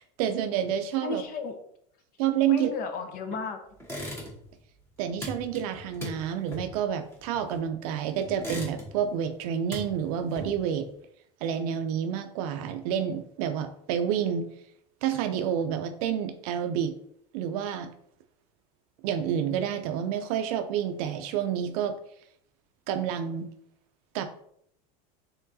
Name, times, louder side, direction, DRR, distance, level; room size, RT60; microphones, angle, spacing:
voice 1, 0.0-1.2 2.2-2.7 5.0-10.9 11.4-14.5 15.0-17.0 17.3-17.9 19.0-22.0 22.9-23.5 24.1-24.2, right 9 dB, 70° right, 8 dB, 0.4 m, -29 dB
voice 2, 1.0-1.6 2.5-3.6, left 5 dB, 45° left, 7 dB, 0.6 m, -33 dB
sound 1, 3.8-4.6 4.8-7.8 8.2-9.1 9.4-10.8, left 1 dB, 10° left, 1.2 m, -39 dB
4.5 x 3.7 x 2.7 m, 0.71 s
supercardioid pair, 135°, 20 cm